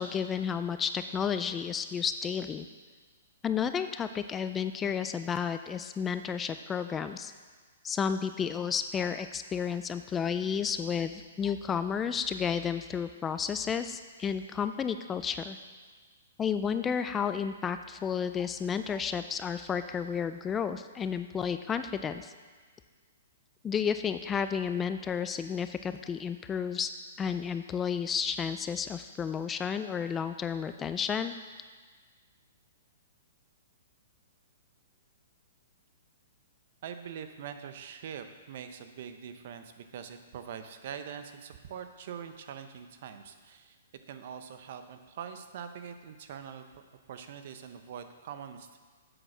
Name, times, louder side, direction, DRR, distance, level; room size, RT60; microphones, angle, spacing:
voice 1, 0.0-2.7 3.4-7.3 7.8-15.6 16.4-22.3 23.6-26.9 27.2-31.3, left 7 dB, 15° left, 10 dB, 0.3 m, -32 dB
voice 2, 36.8-43.8 44.1-48.8, right 8 dB, 55° right, 8 dB, 0.8 m, -43 dB
7.9 x 6.2 x 6.1 m, 1.5 s
hypercardioid pair, 150°, 0 cm